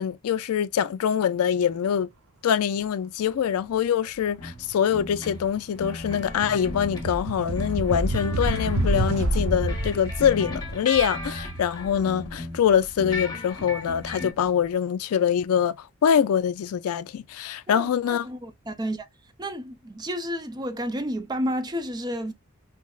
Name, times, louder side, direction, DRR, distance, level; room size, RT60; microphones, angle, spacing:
voice 1, 0.0-2.1 2.4-18.3, left 8 dB, 80° left, 0.3 m, -24 dB
sound 1, 4.4-7.3 7.6-12.7 13.0-14.3, left 1 dB, 20° left, 1.1 m, -36 dB
sound 2, 4.5-4.7 5.1-13.9, right 1 dB, 75° right, 0.7 m, -30 dB
voice 2, 17.7-19.1 19.4-22.3, equal, 20° right, 0.5 m, -31 dB
5.7 x 2.0 x 2.3 m
head